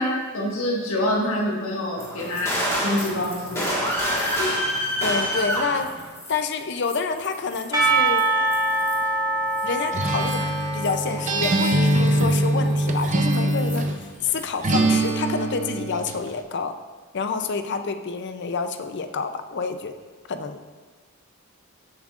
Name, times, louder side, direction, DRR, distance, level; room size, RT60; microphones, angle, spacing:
voice 1, 0.0-3.7 4.4-4.5, left 1 dB, 75° left, -4 dB, 1.7 m, -26 dB
sound 1, 2.0-6.5 6.8-9.1 9.5-14.0 14.3-15.1, equal, 15° left, 1.6 m, -29 dB
voice 2, 5.0-5.9 6.3-8.3 9.6-16.7 17.1-20.0 20.3-20.6, left 5 dB, 55° left, 8 dB, 0.5 m, -28 dB
Percussion / Church bell, 7.7-12.7, right 2 dB, 15° right, 1.0 m, -25 dB
Acoustic guitar, 9.9-14.0 14.6-16.2, right 1 dB, 35° right, 0.6 m, -23 dB
13.5 x 7.3 x 2.5 m, 1.4 s
head